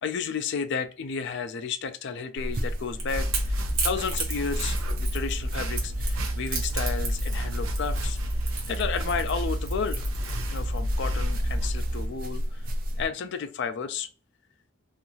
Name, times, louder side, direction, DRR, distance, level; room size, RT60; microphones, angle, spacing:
voice 1, 0.0-3.5 3.8-8.2 8.7-10.0 10.5-12.6 13.0-14.1, left 6 dB, 55° left, 0.4 m, -32 dB
sound 1, 2.4-13.1, equal, 45° right, 0.4 m, -34 dB
Crackle / Crack, 2.6-10.8, right 5 dB, 70° right, 1.0 m, -35 dB
sound 2, 3.1-12.1, equal, 85° right, 0.6 m, -30 dB
2.6 x 2.4 x 2.9 m
head